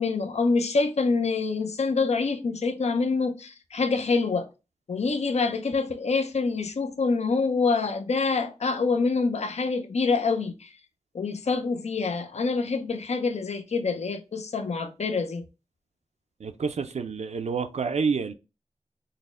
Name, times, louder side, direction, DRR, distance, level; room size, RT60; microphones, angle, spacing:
voice 1, 0.0-4.5 4.9-10.8 11.1-15.4, left 4 dB, 75° left, 0.5 m, -26 dB
voice 2, 16.4-18.3, right 5 dB, 75° right, 0.4 m, -28 dB
4.0 x 2.1 x 3.6 m
wide cardioid pair, 55°, 11 cm